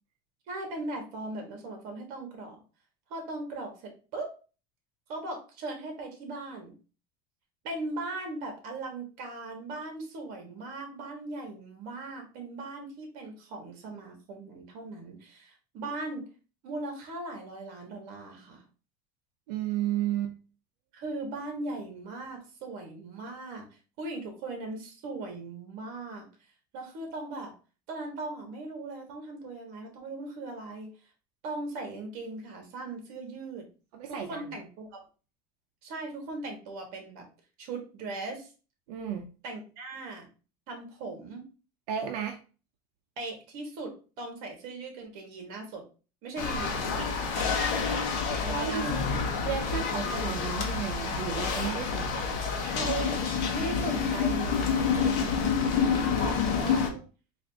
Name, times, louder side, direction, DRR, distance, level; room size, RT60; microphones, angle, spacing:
voice 1, 0.5-2.6 3.1-4.3 5.1-6.7 7.6-16.3 16.6-18.6 20.9-23.7 24.0-26.3 26.7-27.5 27.9-30.9 31.4-33.7 34.1-34.9 35.8-37.3 37.6-38.5 39.4-40.3 40.7-41.5 43.2-45.8 46.2-49.0 52.6-53.2 53.5-56.8, right 2 dB, 50° right, 3 dB, 1.3 m, -39 dB
voice 2, 19.5-20.3 33.9-34.5 38.9-39.3 41.9-42.4 48.5-49.1 49.5-52.4 56.1-57.0, right 9 dB, 85° right, 4 dB, 0.6 m, -33 dB
sound 1, 46.4-56.9, left 6 dB, 55° left, 0.8 m, -28 dB
3.8 x 2.6 x 3.3 m, 0.35 s
cardioid pair, 175°, 19 cm